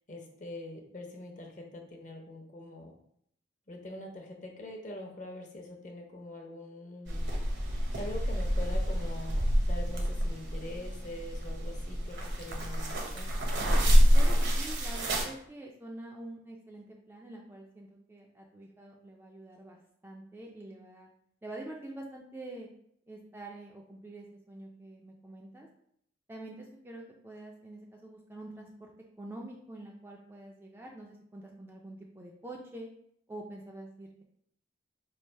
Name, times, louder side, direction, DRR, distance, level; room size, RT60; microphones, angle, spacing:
voice 1, 0.1-3.0 3.7-7.3 7.9-13.4, left 1 dB, 40° left, 1 dB, 0.6 m, -44 dB
sound 1, 7.1-15.2, equal, 60° right, 0.7 m, -27 dB
voice 2, 14.1-21.1 21.4-22.7 23.1-25.7 26.3-28.9 29.2-32.9 33.3-34.2, right 1 dB, 10° right, -1 dB, 0.3 m, -46 dB
3.2 x 2.4 x 4.4 m, 0.70 s
head